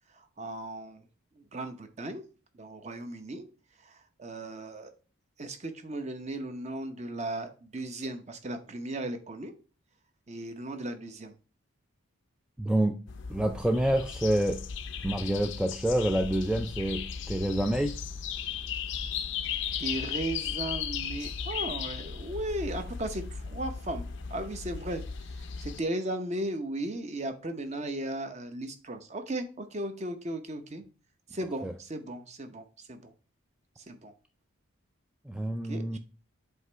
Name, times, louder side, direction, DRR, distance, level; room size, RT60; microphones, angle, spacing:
voice 1, 0.2-1.1 1.4-2.2 2.5-3.5 3.8-4.9 5.4-9.5 10.3-11.3 19.8-25.0 25.4-30.8 31.3-33.1 33.8-34.1 35.6-36.0, right 1 dB, 30° right, 7 dB, 0.8 m, -36 dB
voice 2, 12.6-13.0 13.3-14.6 15.0-17.9 31.6-31.7 35.3-36.0, right 1 dB, 5° right, 5 dB, 0.3 m, -27 dB
sound 1, 13.1-25.8, left 7 dB, 55° left, 0.5 m, -36 dB
8.0 x 3.0 x 5.4 m, 0.36 s
head